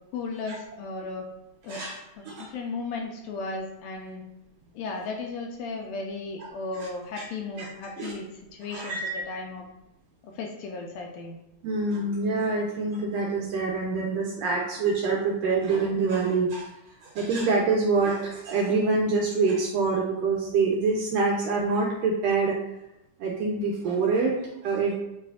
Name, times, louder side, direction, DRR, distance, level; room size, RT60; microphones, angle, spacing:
voice 1, 0.1-1.3 1.6-1.8 2.2-4.2 4.7-9.6 10.2-11.4, left 3 dB, 80° left, 1 dB, 1.7 m, -35 dB
voice 2, 8.7-9.2 11.6-16.7 17.0-22.6 23.2-24.9, right 4 dB, 80° right, -2 dB, 1.5 m, -26 dB
6.9 x 3.2 x 2.3 m, 0.90 s
omnidirectional pair, 3.4 m